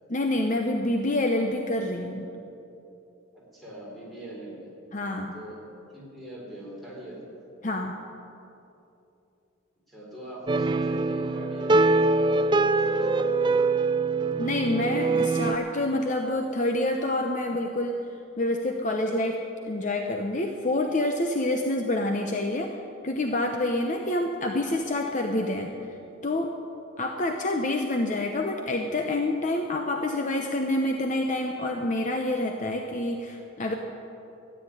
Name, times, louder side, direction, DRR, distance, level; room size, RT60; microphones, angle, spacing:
voice 1, 0.1-2.3 4.9-5.3 7.6-8.0 14.4-18.0 18.4-19.4 19.7-22.8 23.0-25.7 26.2-26.5 27.0-33.7, left 1 dB, 35° left, 3 dB, 0.8 m, -27 dB
voice 2, 3.3-4.7 5.3-5.6 5.9-7.2 9.9-13.6, right 1 dB, ahead, -5 dB, 4.0 m, -42 dB
sound 1, 10.5-15.6, right 3 dB, 20° right, 0.3 m, -23 dB
13.5 x 9.4 x 10.0 m, 2.8 s
head